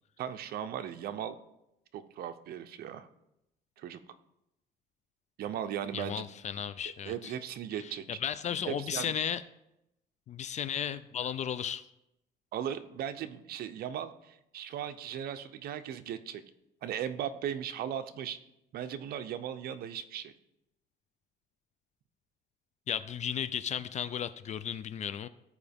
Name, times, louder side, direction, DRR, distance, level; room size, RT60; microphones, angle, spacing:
voice 1, 0.2-1.3 1.9-3.1 3.8-4.0 5.4-6.2 7.1-8.0 8.7-9.1 12.5-16.4 16.8-18.4 18.7-20.3, right 9 dB, 65° right, 9 dB, 0.6 m, -37 dB
voice 2, 5.9-7.3 7.8-9.4 10.3-11.9 22.9-25.3, left 8 dB, 45° left, 14 dB, 0.4 m, -35 dB
14.0 x 4.7 x 3.5 m, 0.85 s
cardioid pair, 110°, 17 cm